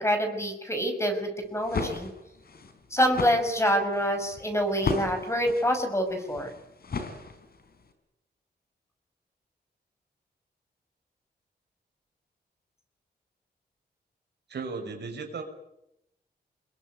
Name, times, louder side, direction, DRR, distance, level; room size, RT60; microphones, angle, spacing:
voice 1, 0.0-2.1 2.9-6.5, equal, 15° left, 6 dB, 6.1 m, -26 dB
sound 1, 1.4-7.7, left 4 dB, 65° left, 4.4 m, -35 dB
voice 2, 14.5-15.4, right 4 dB, 80° right, 4 dB, 5.9 m, -35 dB
26.0 x 22.0 x 9.6 m, 0.84 s
wide cardioid pair, 95°, 17 cm